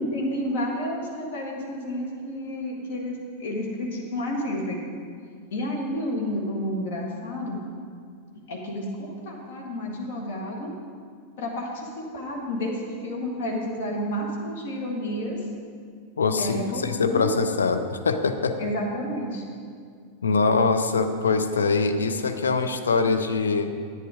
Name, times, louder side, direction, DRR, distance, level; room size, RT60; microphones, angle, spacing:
voice 1, 0.0-4.8 5.5-7.6 8.5-10.7 11.4-11.9 12.1-15.4 16.4-17.3 18.6-19.4, left 1 dB, 55° left, -2 dB, 1.9 m, -30 dB
voice 2, 16.2-18.6 20.2-23.7, left 4 dB, 70° left, 7 dB, 0.7 m, -23 dB
10.5 x 9.2 x 5.0 m, 2.1 s
figure-of-eight pair, 90°, 0 cm